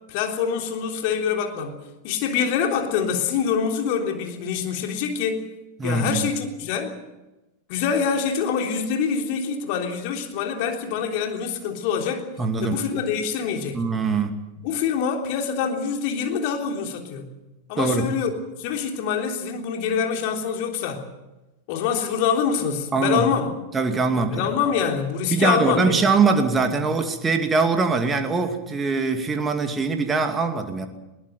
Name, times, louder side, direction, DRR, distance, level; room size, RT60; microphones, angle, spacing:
voice 1, 0.1-1.8 2.0-5.4 5.8-7.0 7.7-12.3 12.6-13.8 14.6-17.3 17.7-18.3 18.6-21.0 21.7-23.5 24.1-26.1, left 7 dB, 45° left, 3 dB, 3.5 m, -25 dB
voice 2, 5.8-6.3 12.4-12.9 13.7-14.3 17.8-18.1 22.9-23.3 23.7-24.4 25.3-30.9, right 4 dB, 15° right, 6 dB, 2.4 m, -22 dB
21.0 x 19.0 x 7.9 m, 1.0 s
figure-of-eight pair, 90°, 0 cm